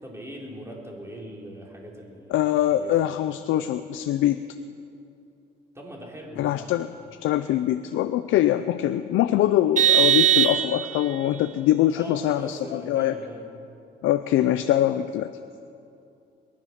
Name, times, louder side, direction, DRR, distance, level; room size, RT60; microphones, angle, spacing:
voice 1, 0.0-2.4 2.7-3.2 5.7-6.6 12.0-13.5, equal, 15° right, -2 dB, 3.8 m, -40 dB
voice 2, 2.3-4.4 6.4-6.9 7.2-13.2 14.0-15.3, left 12 dB, 85° left, 10 dB, 0.5 m, -23 dB
Vehicle horn car horn honking, 9.8-11.2, right 10 dB, 40° right, 0.5 m, -20 dB
22.0 x 11.0 x 5.9 m, 2.6 s
cardioid pair, 90°, 20 cm